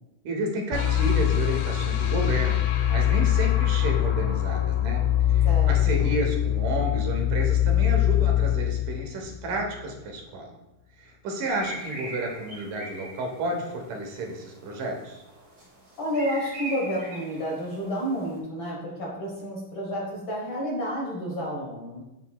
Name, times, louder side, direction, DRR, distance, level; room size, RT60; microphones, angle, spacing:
voice 1, 0.2-2.6 2.9-5.0 5.3-10.5 11.0-15.2, right 1 dB, 75° right, 1 dB, 2.5 m, -31 dB
sound 1, 0.7-9.8, left 12 dB, 85° left, 1.4 m, -23 dB
voice 2, 5.4-6.2 16.0-22.0, equal, 60° left, -4 dB, 1.3 m, -30 dB
sound 2, 11.5-18.4, right 1 dB, 35° right, 2.4 m, -41 dB
8.0 x 7.0 x 2.3 m, 0.95 s
omnidirectional pair, 3.9 m